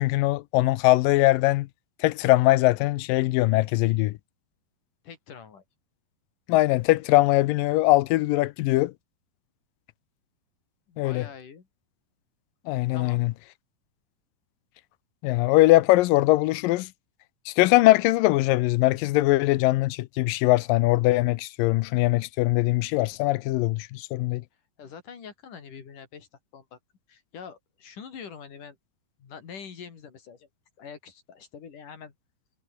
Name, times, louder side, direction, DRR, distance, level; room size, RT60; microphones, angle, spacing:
voice 1, 0.0-1.7 2.0-4.2 6.5-8.9 11.0-11.3 12.7-13.3 15.2-16.9 17.5-24.4, left 18 dB, 80° left, 2.2 m, -21 dB
voice 2, 5.0-5.6 10.9-11.7 12.9-13.2 24.8-26.3 26.5-26.8 27.1-28.8 29.2-30.5 30.8-32.1, left 6 dB, 60° left, 4.6 m, -44 dB
omnidirectional pair, 4.3 m